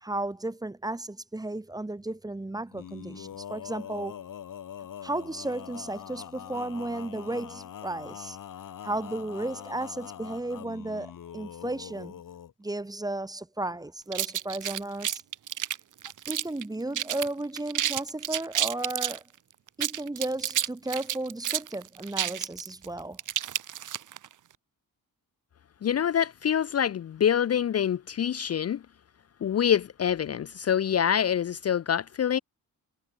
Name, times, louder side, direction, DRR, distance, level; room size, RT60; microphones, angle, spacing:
voice 1, 0.0-4.2 5.0-8.4 8.8-12.2 12.6-15.2 16.3-19.2 19.8-23.2, right 2 dB, 10° right, 1.0 m, -34 dB
Male singing, 2.7-12.5, left 9 dB, 60° left, 1.8 m, -43 dB
sound 1, 14.1-16.6 16.9-17.3 17.6-19.2 19.7-24.3, right 11 dB, 60° right, 0.8 m, -30 dB
voice 2, 25.8-28.8 29.4-32.4, left 9 dB, 45° left, 0.5 m, -26 dB
wide cardioid pair, 155°, 35 cm